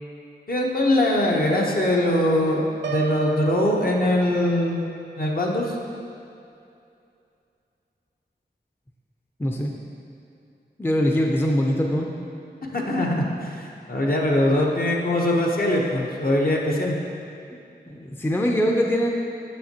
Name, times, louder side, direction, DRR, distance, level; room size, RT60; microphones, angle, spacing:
voice 1, 0.5-4.9 5.2-5.8 12.7-17.0, left 1 dB, 55° left, -2 dB, 0.9 m, -22 dB
Piano, 2.8-4.7, right 7 dB, 90° right, 0.4 m, -33 dB
voice 2, 9.4-9.7 10.8-12.1 17.9-19.1, equal, 10° left, 0 dB, 0.5 m, -22 dB
7.5 x 5.9 x 2.9 m, 2.6 s
wide cardioid pair, 60°, 18 cm